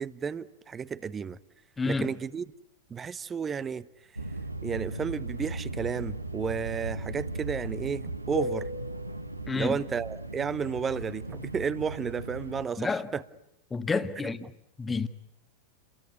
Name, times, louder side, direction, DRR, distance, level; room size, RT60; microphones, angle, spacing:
voice 1, 0.0-1.4 1.9-2.4 2.9-3.9 4.6-8.7 9.5-13.2 14.2-14.3, right 6 dB, 20° right, 1.0 m, -32 dB
voice 2, 1.8-2.1 9.5-9.8 12.8-13.1 13.7-14.4 14.8-15.1, left 4 dB, 15° left, 1.6 m, -29 dB
sound 1, 4.2-12.7, right 1 dB, 85° right, 1.4 m, -36 dB
29.5 x 23.0 x 8.3 m
figure-of-eight pair, 90°, 0 cm